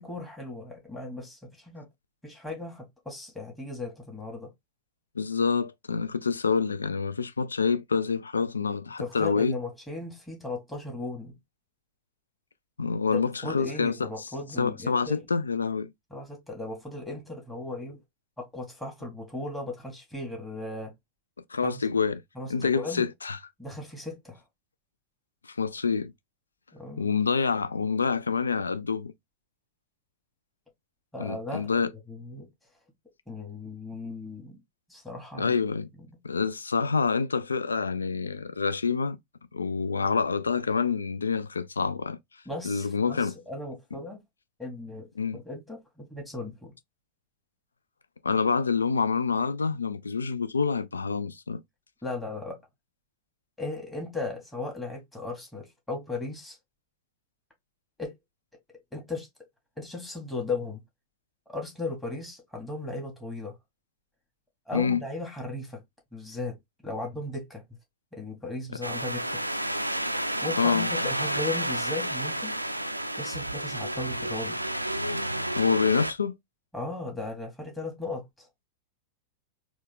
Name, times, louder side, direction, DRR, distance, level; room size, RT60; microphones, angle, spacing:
voice 1, 0.0-1.9 2.2-4.5 9.0-11.3 13.1-15.2 16.1-18.0 18.4-20.9 21.6-21.8 22.4-23.1 23.6-24.4 26.7-27.1 31.1-32.5 33.3-34.6 34.9-35.5 42.5-44.2 44.6-45.1 45.3-46.7 52.0-52.6 53.6-56.6 58.0-58.1 58.9-59.3 59.8-60.8 61.5-63.6 64.7-65.8 66.1-66.6 66.8-67.6 68.1-69.4 70.4-72.6 73.2-74.6 76.7-78.5, left 2 dB, 5° left, 1.7 m, -36 dB
voice 2, 5.2-9.6 12.8-14.1 14.6-15.9 21.5-22.2 22.5-23.4 25.5-26.1 27.0-29.1 31.2-31.9 35.4-35.9 36.2-39.2 39.5-42.2 42.6-43.3 45.2-45.4 48.2-51.6 64.7-65.0 70.6-70.9 75.5-76.4, left 5 dB, 75° left, 0.4 m, -27 dB
sound 1, 68.8-76.1, right 1 dB, 90° right, 0.3 m, -30 dB
4.3 x 2.3 x 3.5 m
figure-of-eight pair, 90°, 0 cm